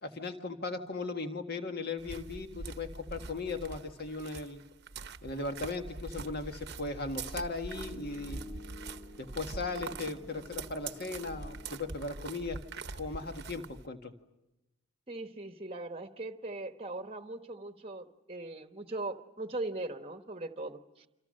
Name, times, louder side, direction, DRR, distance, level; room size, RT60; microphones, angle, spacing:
voice 1, 0.0-4.6 5.2-8.4 9.2-12.6 13.0-14.1, left 3 dB, 50° left, 5 dB, 1.8 m, -37 dB
sound 1, 2.0-13.9, right 4 dB, 50° right, 0.9 m, -44 dB
Piano, 7.7-12.7, left 1 dB, 80° left, 5.7 m, -51 dB
voice 2, 15.1-21.1, right 2 dB, 25° right, 7 dB, 1.1 m, -40 dB
28.5 x 26.5 x 6.6 m, 0.94 s
head